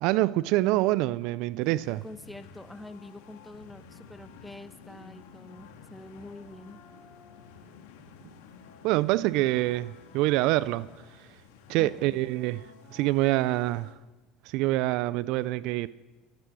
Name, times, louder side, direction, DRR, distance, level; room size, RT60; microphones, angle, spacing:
voice 1, 0.0-2.0 8.8-10.9 11.7-12.6 12.9-13.9 14.5-15.9, right 18 dB, 65° right, 0.4 m, -26 dB
sound 1, 1.6-13.9, left 6 dB, 75° left, 1.7 m, -51 dB
voice 2, 1.6-6.8 11.8-12.2, left 2 dB, 5° left, 1.1 m, -46 dB
14.5 x 10.5 x 7.8 m
hypercardioid pair, 80°, 0 cm